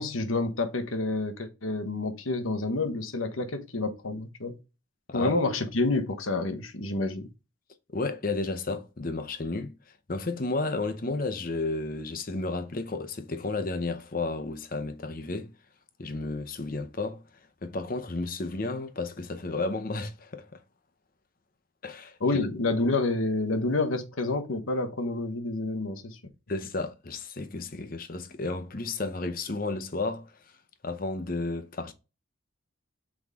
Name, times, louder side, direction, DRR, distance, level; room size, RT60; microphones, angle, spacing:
voice 1, 0.0-4.6 5.1-7.3 22.2-26.2, left 2 dB, 85° left, 1.2 m, -28 dB
voice 2, 7.9-9.7 10.1-15.5 16.0-17.2 17.6-20.6 21.8-22.2 26.5-30.3 30.8-31.9, left 3 dB, 45° left, 0.8 m, -32 dB
6.3 x 4.8 x 3.6 m
head